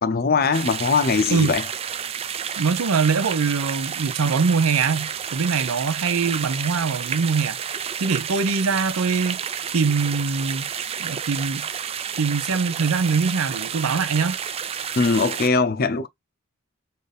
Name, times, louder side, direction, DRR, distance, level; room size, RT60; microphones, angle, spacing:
voice 1, 0.0-1.6 15.0-16.1, left 4 dB, 45° left, 0.5 m, -21 dB
sound 1, 0.5-15.5, right 8 dB, 25° right, 0.3 m, -30 dB
voice 2, 2.6-7.6 8.0-9.4 9.7-10.7 11.0-11.7 12.2-14.4, right 5 dB, 80° right, 0.6 m, -23 dB
4.3 x 2.6 x 3.3 m
head